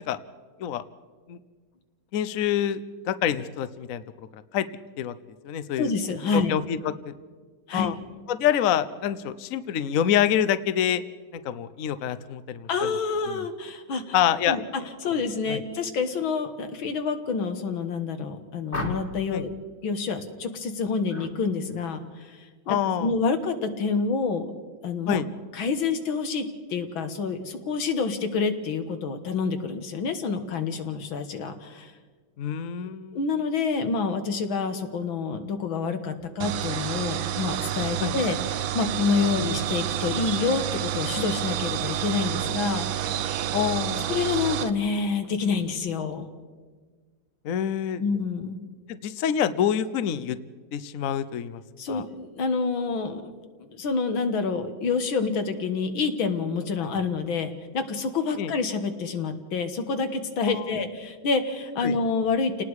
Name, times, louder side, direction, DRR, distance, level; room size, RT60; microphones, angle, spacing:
voice 1, 2.1-2.8 3.1-4.0 4.3-4.7 5.0-5.1 5.4-5.9 6.3-6.8 7.1-7.2 7.7-7.9 8.3-11.0 11.3-12.9 13.3-13.4 14.1-14.6 15.1-15.2 15.5-15.6 19.3-19.4 22.7-23.1 25.1-25.3 32.4-33.2 38.0-38.1 39.3-39.4 43.5-44.1 47.4-48.0 48.9-50.4 50.7-51.6 51.9-52.0 56.8-56.9 58.4-58.5 60.5-60.8 61.8-61.9, left 9 dB, 60° left, 13 dB, 0.9 m, -26 dB
voice 2, 5.8-6.5 7.7-7.9 12.7-14.2 14.5-14.6 15.0-19.5 19.8-24.5 24.8-25.2 25.5-31.9 33.1-43.5 44.1-46.3 48.0-48.6 51.8-53.3 53.7-62.6, left 4 dB, 80° left, 7 dB, 2.2 m, -28 dB
sound 1, 18.7-19.3 21.1-21.4 21.7-22.1, left 2 dB, 30° left, 1.8 m, -34 dB
sound 2, 36.4-44.7, right 11 dB, 75° right, 1.5 m, -29 dB
30.0 x 19.0 x 4.8 m, 1.5 s
omnidirectional pair, 2.2 m